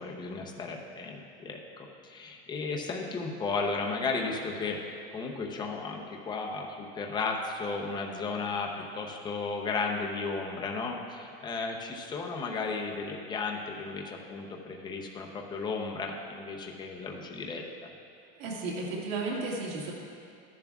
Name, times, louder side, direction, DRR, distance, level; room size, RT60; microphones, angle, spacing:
voice 1, 0.0-1.6 2.0-17.6, left 4 dB, 15° left, 0 dB, 0.7 m, -34 dB
voice 2, 18.4-19.9, right 3 dB, 75° right, -4 dB, 2.1 m, -33 dB
13.0 x 10.5 x 2.4 m, 2.4 s
supercardioid pair, 160°, 31 cm